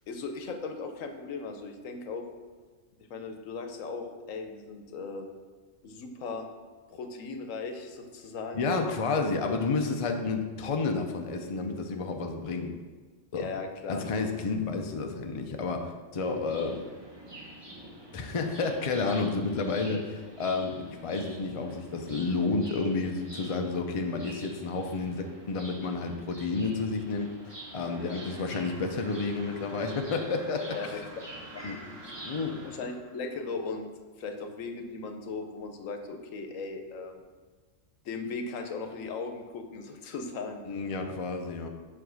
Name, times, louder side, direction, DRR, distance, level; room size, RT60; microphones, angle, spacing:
voice 1, 0.1-2.3 3.1-5.3 5.8-6.5 6.9-8.7 13.3-14.1 28.0-28.2 30.7-31.0 31.5-31.6 32.6-33.9 34.2-37.2 38.0-40.6, left 4 dB, 80° left, 6 dB, 1.1 m, -37 dB
voice 2, 8.5-12.7 13.3-13.5 13.9-16.9 18.1-31.0 31.6-31.8 32.2-32.6 40.7-41.7, left 4 dB, 40° left, 4 dB, 0.5 m, -31 dB
sound 1, 16.1-32.9, right 1 dB, 20° right, 1.0 m, -47 dB
sound 2, 26.7-33.7, right 3 dB, 75° right, 1.1 m, -52 dB
7.0 x 3.6 x 6.2 m, 1.4 s
omnidirectional pair, 1.4 m